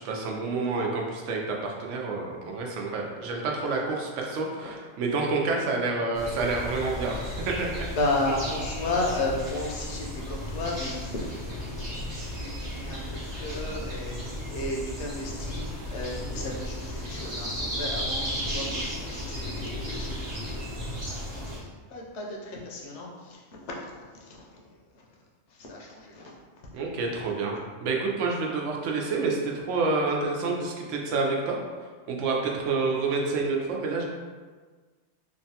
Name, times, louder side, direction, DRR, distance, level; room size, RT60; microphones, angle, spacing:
voice 1, 0.0-7.7 26.7-27.6 27.8-31.6 32.1-34.1, right 3 dB, 85° right, 0 dB, 0.9 m, -28 dB
sound 1, 6.1-21.6, equal, 25° right, 0.7 m, -34 dB
voice 2, 8.0-11.8 12.3-20.6 21.1-21.2 21.9-23.4 25.7-26.3, left 2 dB, 75° left, -2 dB, 0.9 m, -33 dB
3.0 x 2.2 x 2.7 m, 1.5 s
omnidirectional pair, 1.2 m